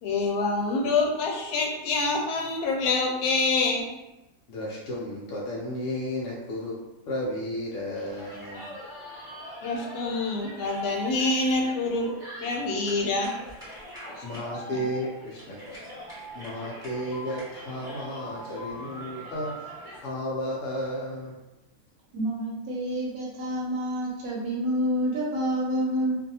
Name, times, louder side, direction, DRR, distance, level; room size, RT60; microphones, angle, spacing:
voice 1, 0.0-3.8 9.6-12.1 12.4-13.3 14.2-14.3, left 3 dB, 85° left, 0 dB, 1.1 m, -26 dB
voice 2, 4.5-6.8 7.0-8.8 14.2-15.8 16.3-19.7 20.0-21.4, equal, 70° left, -4 dB, 0.9 m, -33 dB
sound 1, 7.9-20.0, equal, ahead, 1.3 m, -42 dB
voice 3, 22.1-26.2, equal, 75° right, -4 dB, 1.0 m, -28 dB
2.6 x 2.3 x 2.7 m, 0.98 s
omnidirectional pair, 1.6 m